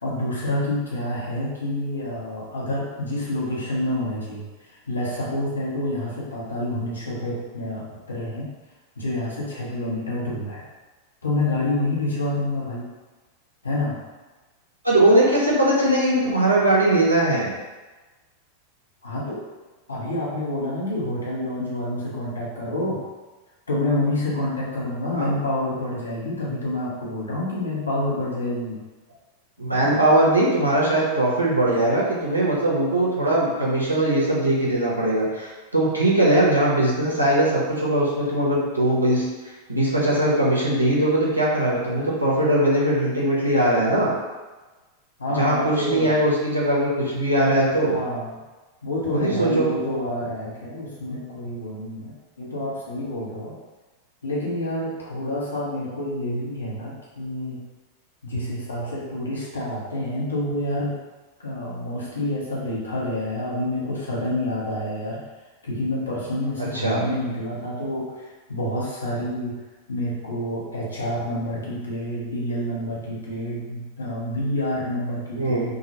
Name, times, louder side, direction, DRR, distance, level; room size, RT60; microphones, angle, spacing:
voice 1, 0.0-8.5 9.0-10.6 11.2-12.8 13.6-14.0 19.0-19.4 19.9-23.0 23.7-28.8 45.2-46.1 47.9-48.3 48.8-53.5 54.2-57.6 58.2-61.0 61.4-65.2 65.6-69.6 69.9-75.8, left 1 dB, 75° left, -5 dB, 0.6 m, -28 dB
voice 2, 14.8-17.5 25.1-25.3 29.6-39.2 39.7-44.1 45.3-47.9 49.1-49.7 66.6-67.0 75.4-75.7, right 1 dB, 85° right, -6 dB, 0.6 m, -20 dB
2.3 x 2.1 x 2.8 m, 1.2 s
figure-of-eight pair, 90°, 0 cm